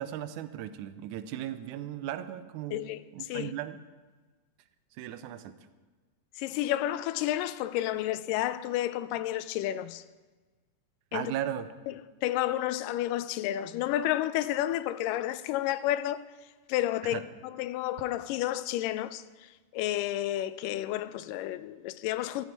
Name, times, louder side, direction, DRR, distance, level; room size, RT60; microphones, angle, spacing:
voice 1, 0.0-3.8 4.9-5.5 11.1-11.8 17.0-17.2, right 11 dB, 80° right, 1.8 m, -37 dB
voice 2, 2.7-3.5 6.4-10.0 11.1-11.3 11.9-12.0 12.2-16.2 16.7-17.3 17.6-22.5, left 13 dB, 80° left, 2.1 m, -31 dB
13.5 x 12.0 x 4.6 m
omnidirectional pair, 4.0 m